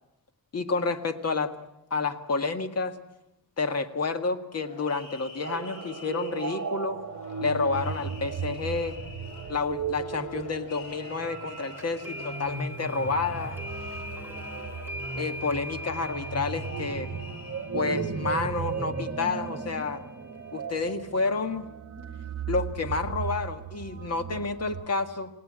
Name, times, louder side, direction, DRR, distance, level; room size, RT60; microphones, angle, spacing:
voice 1, 0.5-1.6 1.9-3.0 3.6-7.0 7.4-9.0 9.5-13.6 15.2-17.1 17.7-20.0 20.5-21.7 22.5-25.3, left 4 dB, 40° left, 8 dB, 1.9 m, -29 dB
sound 1, 4.6-17.7, left 2 dB, 65° left, 6.6 m, -46 dB
sound 2, 5.4-24.8, right 6 dB, 45° right, 1.7 m, -36 dB
sound 3, 11.8-20.6, left 1 dB, 5° right, 1.3 m, -43 dB
28.5 x 17.5 x 8.8 m, 0.90 s
wide cardioid pair, 165°, 37 cm